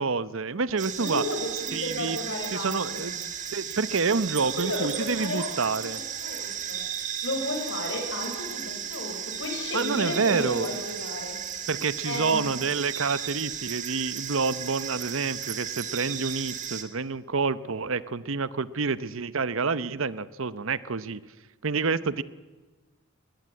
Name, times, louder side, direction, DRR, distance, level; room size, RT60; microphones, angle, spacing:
voice 1, 0.0-1.2 1.7-2.2 2.5-6.0 9.7-10.7 11.7-21.2 21.6-22.2, right 4 dB, 65° right, 17 dB, 0.8 m, -28 dB
sound 1, 0.8-16.8, right 8 dB, 35° right, 1.9 m, -35 dB
voice 2, 1.0-3.1 4.4-6.9 7.2-11.4 12.0-12.5, left 1 dB, 55° left, 3 dB, 6.5 m, -33 dB
21.0 x 19.5 x 9.7 m, 1.2 s
head